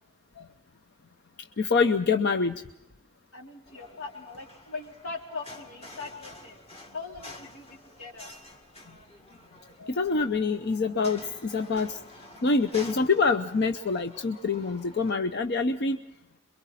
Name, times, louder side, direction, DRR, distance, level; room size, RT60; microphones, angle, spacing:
voice 1, 1.6-2.6 9.8-12.0 12.4-16.0, left 4 dB, 50° left, 8 dB, 0.7 m, -26 dB
voice 2, 3.3-6.6 6.9-8.3, left 4 dB, 80° left, 0 dB, 3.8 m, -40 dB
sound 1, 3.7-15.2, left 1 dB, 30° left, 2.0 m, -48 dB
27.0 x 23.0 x 4.1 m, 0.88 s
head